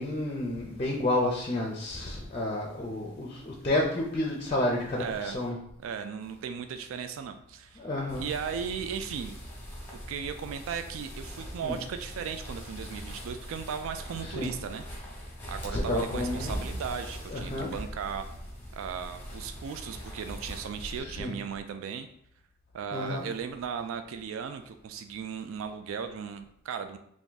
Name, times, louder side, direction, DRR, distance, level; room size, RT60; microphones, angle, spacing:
voice 1, 0.0-5.6 7.8-8.2 11.6-11.8 14.2-14.5 15.7-16.6 17.3-17.7 21.0-21.3 22.9-23.2, left 1 dB, 30° left, 0 dB, 0.5 m, -30 dB
voice 2, 5.0-5.4 5.8-7.8 8.2-9.4 9.9-14.9 15.5-18.2 18.7-22.1 22.7-27.0, right 7 dB, 75° right, 8 dB, 0.3 m, -36 dB
sound 1, 8.1-21.0, equal, 10° left, 0.9 m, -41 dB
3.5 x 2.5 x 3.8 m, 0.72 s
head